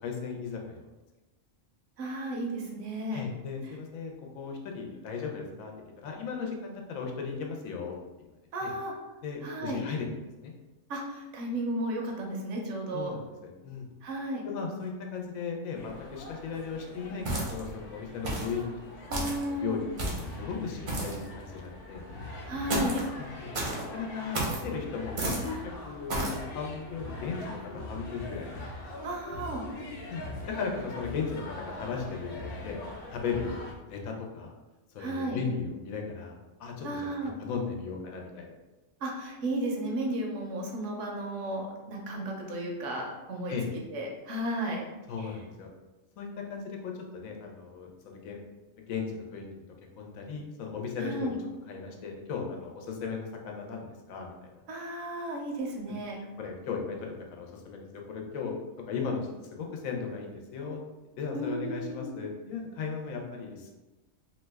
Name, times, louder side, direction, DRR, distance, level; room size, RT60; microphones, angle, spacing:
voice 1, 0.0-0.8 3.1-8.3 8.6-8.7 9.2-10.5 12.9-13.9 14.4-18.7 19.0-22.0 23.2-23.5 23.9-28.5 30.1-32.8 33.1-34.5 34.9-38.5 43.5-43.7 45.1-45.7 46.2-48.4 48.9-49.5 50.0-51.3 51.7-54.5 55.9-56.0 56.4-60.8 61.2-63.7, left 5 dB, 80° left, 1 dB, 1.0 m, -37 dB
voice 2, 2.0-3.2 8.5-8.9 9.4-9.8 10.9-13.1 14.0-14.4 19.1-19.8 22.5-23.0 29.0-29.6 35.0-35.4 36.8-37.3 39.0-43.5 43.9-44.8 45.2-45.3 51.0-51.4 54.7-56.2 61.3-62.2, right 1 dB, 70° right, 0 dB, 0.9 m, -34 dB
sound 1, 15.7-33.7, left 2 dB, 65° left, 0.6 m, -43 dB
sound 2, 17.2-17.7 18.2-18.6 19.1-19.4 20.0-20.3 20.9-21.2 22.7-23.1 23.5-23.8 24.3-24.6 25.2-25.5 26.1-26.4, right 2 dB, 45° right, 0.6 m, -31 dB
2.7 x 2.1 x 3.3 m, 1.1 s
omnidirectional pair, 1.4 m